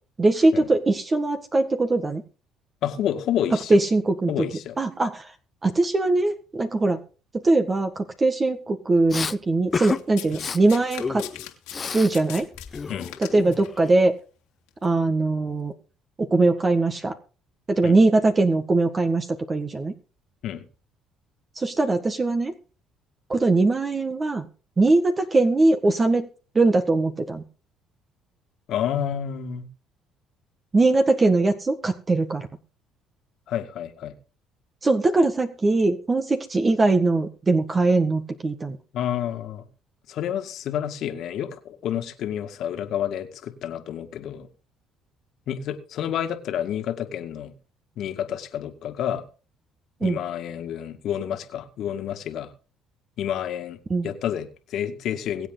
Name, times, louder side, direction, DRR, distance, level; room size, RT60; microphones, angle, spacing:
voice 1, 0.2-2.2 3.7-4.4 4.8-5.3 5.6-7.0 7.3-7.9 8.2-11.3 11.9-12.5 13.2-14.2 14.8-15.7 16.2-17.1 17.7-19.9 21.5-22.5 23.3-24.5 24.8-26.3 26.5-27.4 30.7-32.5 34.8-38.8 50.0-50.2 53.9-54.1, right 2 dB, 30° right, 1.8 m, -21 dB
voice 2, 2.8-3.8 4.3-4.8 12.9-13.1 17.8-18.0 20.4-20.6 28.7-29.7 33.5-34.1 38.9-39.6 40.1-44.5 45.5-47.5 48.0-49.2 50.0-52.5 53.2-53.8 54.0-55.5, left 10 dB, 65° left, 2.3 m, -29 dB
Respiratory sounds, 9.1-9.4 9.7-10.0 10.3-10.6 11.0-12.1 12.4-13.8, left 5 dB, 30° left, 0.8 m, -31 dB
Domestic sounds home sounds, 9.8-13.8 14.7-14.9, left 16 dB, 90° left, 2.7 m, -40 dB
23.0 x 8.1 x 4.0 m
supercardioid pair, 80°, 0 cm